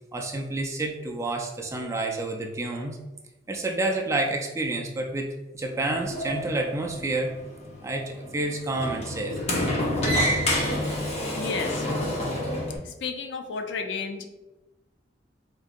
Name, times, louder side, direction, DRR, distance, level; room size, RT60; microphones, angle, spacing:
voice 1, 0.1-3.0 3.5-7.3 7.8-9.4, right 2 dB, 15° right, 1 dB, 0.4 m, -29 dB
Sliding door, 5.7-12.8, equal, 35° left, 0.6 m, -29 dB
voice 2, 11.4-11.9 12.8-14.2, left 5 dB, 75° left, 6 dB, 0.4 m, -33 dB
3.8 x 2.6 x 2.4 m, 1.0 s
head